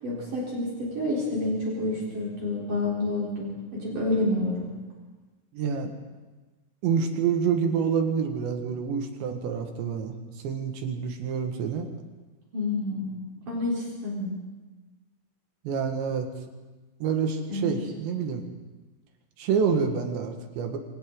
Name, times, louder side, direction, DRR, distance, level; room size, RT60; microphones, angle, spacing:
voice 1, 0.0-4.7 12.5-14.3 17.5-17.7, left 2 dB, 50° right, -5 dB, 5.2 m, -29 dB
voice 2, 5.5-5.9 6.8-10.1 10.4-11.9 15.7-16.3 17.0-18.5 19.4-20.8, right 6 dB, 90° right, 4 dB, 4.0 m, -27 dB
27.5 x 25.5 x 3.9 m, 1.2 s
omnidirectional pair, 5.0 m